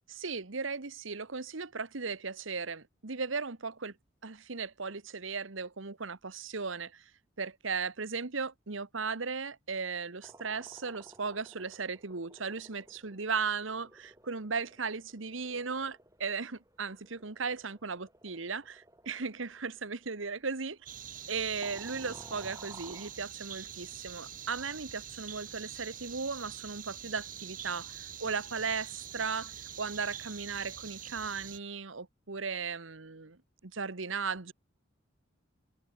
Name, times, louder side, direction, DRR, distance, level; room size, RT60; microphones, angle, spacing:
voice 1, 0.1-3.9 4.2-7.0 7.4-20.8 21.3-33.4 33.6-34.5, right 5 dB, 80° right, 1.3 m, -36 dB
sound 1, 10.2-21.4 21.6-23.2, right 2 dB, 15° right, 5.8 m, -56 dB
sound 2, 20.9-31.6, right 9 dB, 40° right, 1.9 m, -45 dB
head